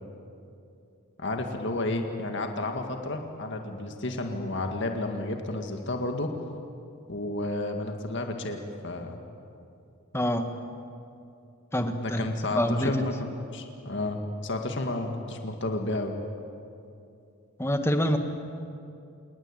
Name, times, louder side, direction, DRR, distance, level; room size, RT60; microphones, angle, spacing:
voice 1, 1.2-6.3 7.1-8.6 8.8-9.2 12.0-16.1, left 2 dB, 55° left, 4 dB, 2.1 m, -31 dB
voice 2, 10.1-10.5 11.7-12.2 12.5-13.0 17.6-18.2, equal, 10° left, 6 dB, 1.5 m, -26 dB
27.5 x 20.0 x 9.0 m, 2.6 s
head